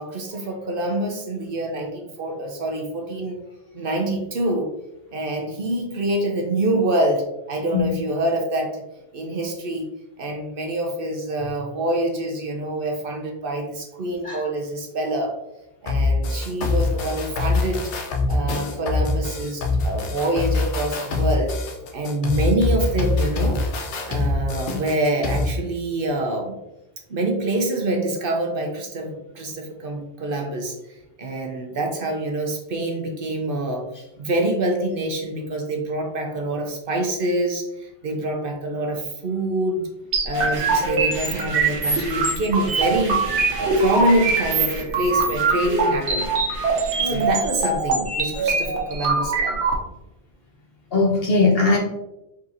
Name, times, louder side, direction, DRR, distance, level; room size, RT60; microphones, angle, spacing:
voice 1, 0.0-3.4 3.7-4.7 5.1-8.8 9.1-9.8 10.2-15.3 15.8-17.8 18.3-21.5 21.9-23.6 24.1-26.6 27.1-30.7 31.2-33.8 34.2-39.8 40.2-43.2 43.6-46.2 47.0-49.6, right 1 dB, 55° right, 2 dB, 0.8 m, -26 dB
sound 1, 15.9-25.5, left 3 dB, 85° left, 1.0 m, -24 dB
sound 2, 40.1-49.7, right 3 dB, 80° right, 1.1 m, -23 dB
sound 3, 40.3-47.3, right 2 dB, 30° right, 0.9 m, -36 dB
voice 2, 47.0-47.4 50.9-51.8, left 3 dB, 60° left, -1 dB, 1.1 m, -20 dB
4.3 x 3.6 x 2.6 m, 0.93 s
omnidirectional pair, 1.2 m